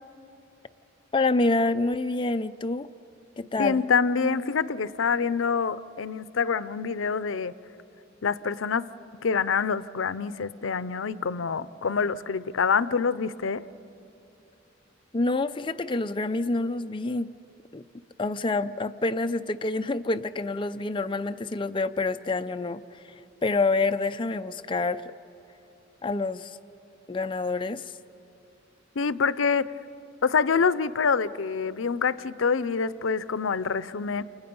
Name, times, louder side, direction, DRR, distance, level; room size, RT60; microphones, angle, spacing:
voice 1, 1.1-2.9 3.4-3.8 15.1-17.3 17.7-17.8 18.2-25.0 26.0-26.6 27.1-27.9, left 3 dB, 25° left, 8 dB, 0.5 m, -27 dB
voice 2, 3.6-7.5 8.2-8.9 9.2-13.6 29.0-29.7 30.2-34.2, left 5 dB, 80° left, 17 dB, 0.6 m, -26 dB
29.5 x 29.0 x 5.4 m, 2.8 s
head